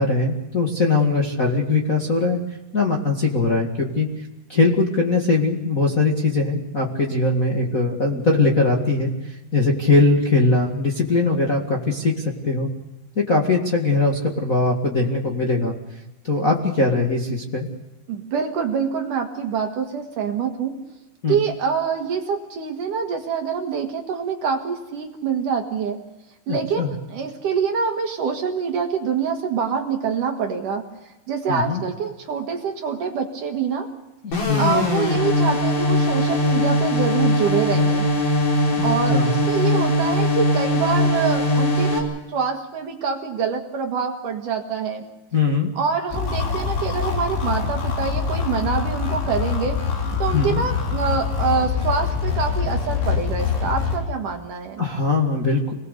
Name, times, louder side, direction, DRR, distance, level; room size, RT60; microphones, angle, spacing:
voice 1, 0.0-2.4 2.7-4.1 4.5-12.7 13.1-15.7 16.2-17.7 21.2-21.4 26.5-26.9 31.5-31.8 34.4-34.8 38.8-39.3 45.3-45.7 50.3-50.6 54.8-55.7, left 3 dB, 65° left, -1 dB, 0.8 m, -21 dB
voice 2, 18.1-20.8 21.3-26.0 26.5-30.8 31.3-33.9 34.3-38.1 38.8-45.0 45.8-49.8 50.2-54.9, right 6 dB, 55° right, 4 dB, 2.6 m, -25 dB
sound 1, 34.3-42.0, left 1 dB, 45° left, 5.6 m, -20 dB
sound 2, 46.1-54.0, left 6 dB, 90° left, 7.4 m, -24 dB
26.5 x 20.5 x 6.7 m, 1.0 s
omnidirectional pair, 5.3 m